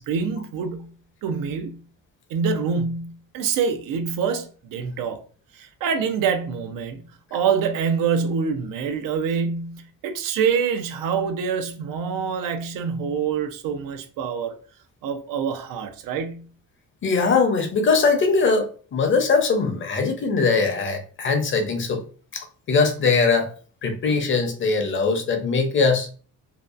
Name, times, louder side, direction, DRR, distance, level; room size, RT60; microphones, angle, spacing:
voice 1, 0.1-0.9 1.2-1.8 2.3-5.2 5.5-14.5 15.0-16.5, right 6 dB, 85° right, 0.5 m, -26 dB
voice 2, 17.0-22.0 22.3-23.5 23.8-26.1, left 4 dB, 40° left, 0.5 m, -21 dB
2.7 x 2.2 x 2.4 m
cardioid pair, 125°, 32 cm